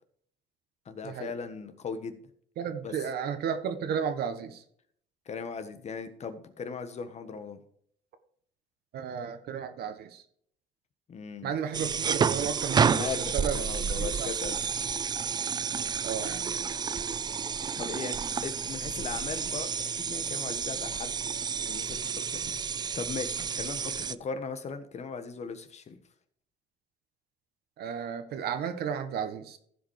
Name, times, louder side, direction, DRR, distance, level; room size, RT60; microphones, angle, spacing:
voice 1, 0.8-2.2 2.8-2.9 5.3-7.6 11.1-11.5 12.9-14.6 17.7-18.1 18.4-19.7 20.0-21.2 21.7-22.4 22.9-26.0, left 5 dB, 40° left, 10 dB, 1.3 m, -38 dB
voice 2, 2.6-4.6 8.9-10.2 11.4-13.6 14.0-14.3 16.0-16.7 22.4-22.5 27.8-29.6, right 7 dB, 70° right, 9 dB, 1.5 m, -33 dB
sound 1, 11.7-24.1, right 6 dB, 25° right, 0.4 m, -30 dB
15.0 x 5.2 x 4.9 m, 0.63 s
cardioid pair, 110°, 17 cm